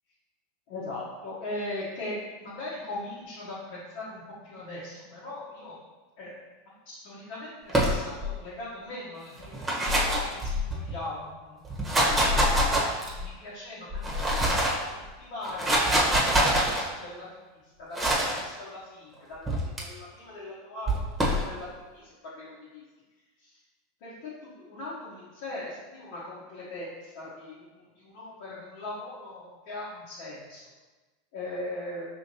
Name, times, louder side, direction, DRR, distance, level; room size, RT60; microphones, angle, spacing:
voice 1, 0.7-5.8 6.2-6.3 6.8-9.8 10.1-11.6 12.3-17.3 17.8-22.8 23.4-23.5 24.0-30.6 31.3-32.1, left 2 dB, 60° left, -8 dB, 1.1 m, -40 dB
sound 1, 7.7-8.4 9.4-10.9 11.6-13.3 13.9-14.8 15.4-16.8 17.9-18.4 19.5-19.8 20.9-21.5, equal, 15° right, 1.2 m, -25 dB
5.4 x 3.1 x 2.8 m, 1.3 s
hypercardioid pair, 90°, 0 cm